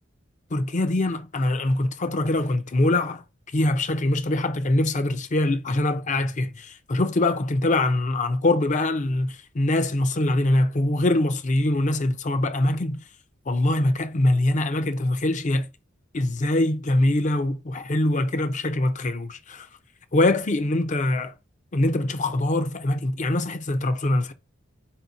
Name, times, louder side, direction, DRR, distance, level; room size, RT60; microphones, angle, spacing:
voice 1, 0.5-3.2 3.5-13.0 13.5-15.7 16.1-19.7 20.1-21.3 21.7-24.3, left 1 dB, 40° left, 0.6 m, -23 dB
4.4 x 2.9 x 4.0 m
head